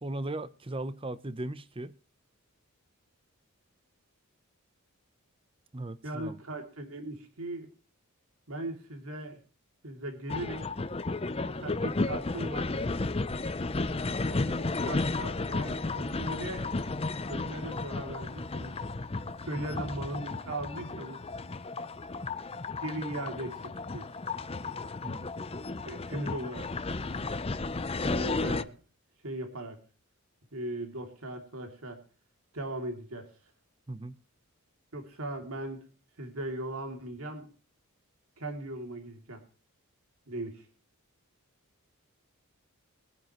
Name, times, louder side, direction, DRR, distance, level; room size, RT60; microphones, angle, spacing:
voice 1, 0.0-1.9 5.7-6.4 19.5-19.8 25.0-25.2 33.9-34.1, right 2 dB, 25° right, 15 dB, 0.8 m, -37 dB
voice 2, 6.0-7.7 8.5-9.4 9.8-10.7 11.5-12.7 14.2-16.7 17.3-18.7 19.4-21.2 22.8-24.1 25.9-26.8 28.0-28.8 29.2-29.8 30.5-32.0 32.5-33.3 34.9-35.9 36.2-37.5 38.4-39.4 40.3-40.7, right 1 dB, 75° right, 4 dB, 2.9 m, -38 dB
sound 1, 10.3-28.6, left 3 dB, 25° left, 0.6 m, -33 dB
22.5 x 9.4 x 3.1 m, 0.38 s
head